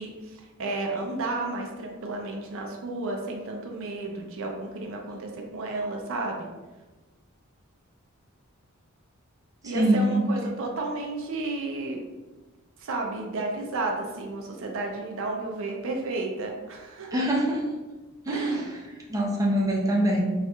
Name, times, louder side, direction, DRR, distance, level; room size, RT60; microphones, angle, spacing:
voice 1, 0.0-6.5 9.6-12.0 12.8-17.2 18.3-18.7, right 2 dB, 65° right, 1 dB, 0.5 m, -32 dB
voice 2, 9.6-10.2 17.1-17.6 18.3-18.6 19.1-20.2, right 1 dB, 15° right, -3 dB, 0.5 m, -24 dB
4.3 x 2.4 x 2.3 m, 1.2 s
head